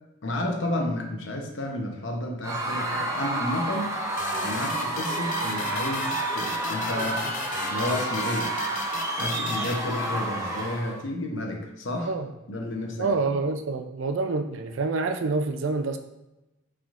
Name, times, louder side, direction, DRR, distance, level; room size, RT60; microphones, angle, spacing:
voice 1, 0.2-3.9 4.4-7.3 7.7-8.5 9.2-12.1 12.5-13.1, left 1 dB, 65° left, 1 dB, 0.8 m, -31 dB
Screaming / Cheering / Crowd, 2.4-11.0, right 2 dB, 15° right, 0.5 m, -29 dB
sound 1, 4.2-10.5, left 5 dB, 40° left, 0.4 m, -37 dB
voice 2, 13.0-16.0, right 3 dB, 70° right, 7 dB, 0.4 m, -27 dB
6.0 x 3.6 x 2.5 m, 0.95 s
head